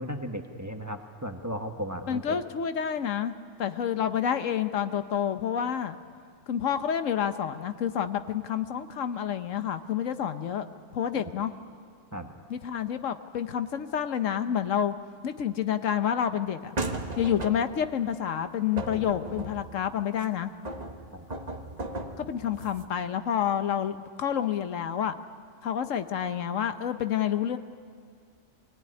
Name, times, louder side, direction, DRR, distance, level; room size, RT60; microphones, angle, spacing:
voice 1, 0.0-2.4 12.1-12.3 21.1-21.2, equal, 15° right, 4 dB, 1.2 m, -35 dB
voice 2, 2.1-3.3 3.6-6.0 6.5-10.7 10.9-11.5 12.5-14.9 15.2-16.7 17.2-20.5 22.2-25.2 25.6-27.6, left 9 dB, 80° left, 10 dB, 1.2 m, -29 dB
sound 1, 16.8-17.9 18.8-20.2 20.6-22.9, right 2 dB, 35° right, 1.4 m, -36 dB
24.0 x 18.0 x 9.7 m, 2.2 s
omnidirectional pair, 1.3 m